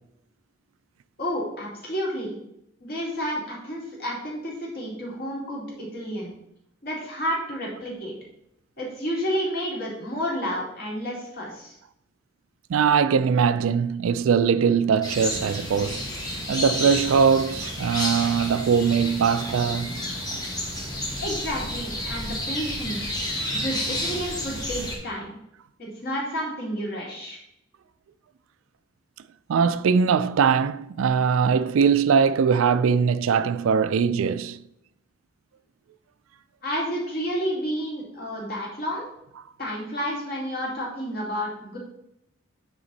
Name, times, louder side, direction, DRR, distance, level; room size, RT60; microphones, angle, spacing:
voice 1, 1.2-2.4 2.8-6.3 6.8-8.1 8.8-11.8 21.2-23.2 23.5-25.4 25.8-27.4 36.6-39.1 39.6-41.8, equal, 45° left, 2.5 m, -30 dB
voice 2, 12.7-16.1 16.5-20.1 29.5-34.6, right 6 dB, 80° right, 0.3 m, -21 dB
sound 1, 15.0-25.0, left 1 dB, 20° left, 1.4 m, -31 dB
8.7 x 4.2 x 4.0 m
head